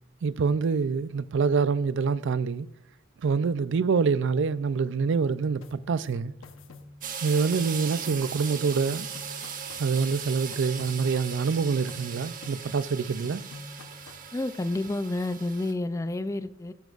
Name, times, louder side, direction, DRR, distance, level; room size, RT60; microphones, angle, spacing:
voice 1, 0.2-2.7 3.2-6.3 7.2-9.1 9.8-13.4, right 5 dB, 65° right, 0.4 m, -26 dB
sound 1, 5.6-8.6 8.9-11.6 11.9-13.0 13.2-14.3, left 2 dB, 85° left, 0.9 m, -47 dB
sound 2, 7.0-15.7, right 7 dB, 45° right, 1.3 m, -38 dB
voice 2, 14.3-16.7, left 2 dB, 15° left, 0.3 m, -30 dB
14.0 x 10.5 x 2.4 m
head